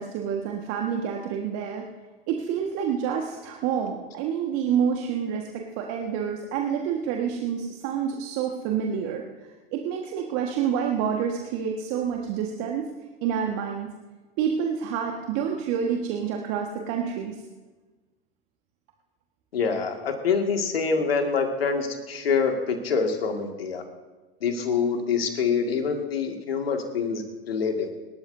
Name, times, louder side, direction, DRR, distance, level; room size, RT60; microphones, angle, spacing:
voice 1, 0.0-1.8 2.3-9.2 9.7-12.9 13.2-13.9 14.4-17.4, right 7 dB, 50° right, 1 dB, 1.6 m, -28 dB
voice 2, 19.5-23.8 24.4-27.9, left 5 dB, 75° left, 4 dB, 2.2 m, -26 dB
26.5 x 13.0 x 2.7 m, 1.2 s
figure-of-eight pair, 85°, 30 cm